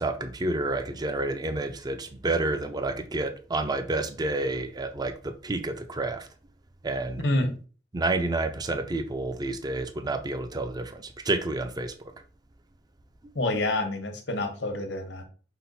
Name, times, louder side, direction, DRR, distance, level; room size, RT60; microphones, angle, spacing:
voice 1, 0.0-6.3 6.8-7.2 7.9-12.1, right 2 dB, 25° right, 0.4 m, -29 dB
voice 2, 13.3-15.2, left 2 dB, 85° left, 1.1 m, -27 dB
5.7 x 2.2 x 4.0 m
head